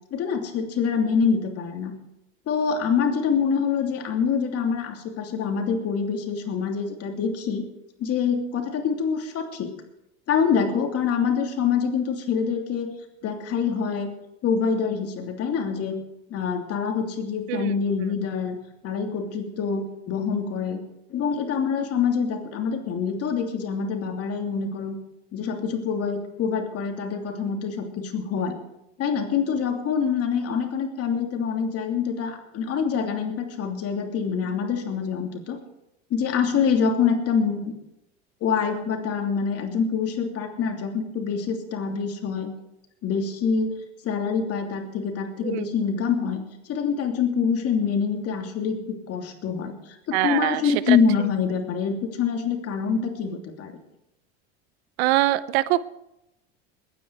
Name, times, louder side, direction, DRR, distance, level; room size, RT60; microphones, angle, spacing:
voice 1, 0.1-1.9 2.5-7.7 8.0-9.7 10.3-12.9 13.2-14.1 14.4-16.0 16.3-18.6 18.8-20.8 21.1-25.0 25.3-28.6 29.0-35.6 36.1-37.7 38.4-42.5 43.0-48.8 49.1-53.7, left 6 dB, 45° left, 4 dB, 2.9 m, -25 dB
voice 2, 50.1-51.0 55.0-55.9, right 16 dB, 75° right, 17 dB, 0.8 m, -23 dB
21.5 x 9.5 x 4.7 m, 0.86 s
supercardioid pair, 100°, 32 cm